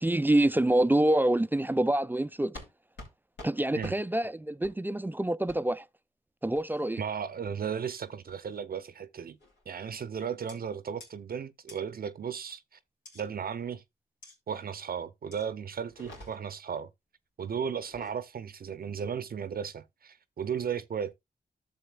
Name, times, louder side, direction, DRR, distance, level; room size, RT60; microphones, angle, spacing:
voice 1, 0.0-2.6 3.4-5.8 6.4-7.0, right 1 dB, 10° right, 0.3 m, -26 dB
sound 1, 2.5-2.7 3.0-3.1 3.4-3.5 3.8-4.0 4.6-4.8 5.5-5.6 6.5-6.9 7.5-7.8 8.3-8.6 9.4-9.7 10.5-10.6 11.0-11.1 11.7-11.8 13.0-13.2 14.2-14.4 15.3-15.5 15.9-16.6 17.8-18.2, left 1 dB, 85° left, 2.7 m, -48 dB
voice 2, 7.0-9.4 9.7-12.8 13.1-13.8 14.5-16.9 17.4-21.1, right 7 dB, 55° right, 0.6 m, -35 dB
11.5 x 6.6 x 2.3 m
supercardioid pair, 45°, 18 cm